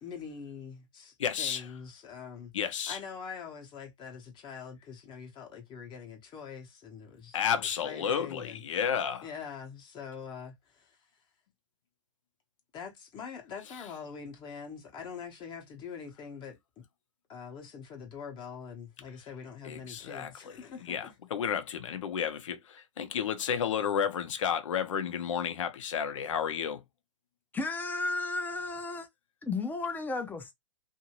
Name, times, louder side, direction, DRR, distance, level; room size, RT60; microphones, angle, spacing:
voice 1, 0.0-2.5 2.9-8.6 9.2-11.0 12.7-16.8 17.3-21.2, left 6 dB, 30° left, 1.0 m, -44 dB
voice 2, 1.2-1.6 2.5-3.0 7.3-9.2 19.6-20.5 20.8-26.8, left 8 dB, 75° left, 0.8 m, -32 dB
voice 3, 27.5-29.1 29.4-30.5, left 3 dB, 10° left, 0.6 m, -33 dB
2.7 x 2.6 x 3.0 m
hypercardioid pair, 125°, 16 cm